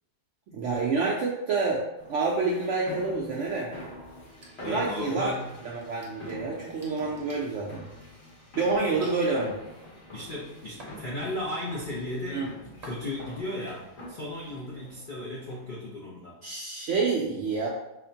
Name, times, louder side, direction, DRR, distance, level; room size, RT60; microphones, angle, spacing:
voice 1, 0.5-3.7 4.7-5.3 5.6-7.8 8.6-9.5 12.3-12.5 16.4-17.7, right 4 dB, 75° right, -4 dB, 0.6 m, -28 dB
sound 1, 2.0-15.9, left 1 dB, 45° left, 1.2 m, -46 dB
sound 2, 4.3-5.2 5.7-8.3 9.0-9.3 9.8-11.6 12.0-12.4 12.8-13.4, right 1 dB, 40° right, 0.6 m, -50 dB
voice 2, 4.6-5.4 8.9-9.1 10.1-16.4, left 1 dB, 75° left, -6 dB, 0.4 m, -36 dB
5.0 x 2.1 x 2.7 m, 0.91 s
omnidirectional pair, 1.7 m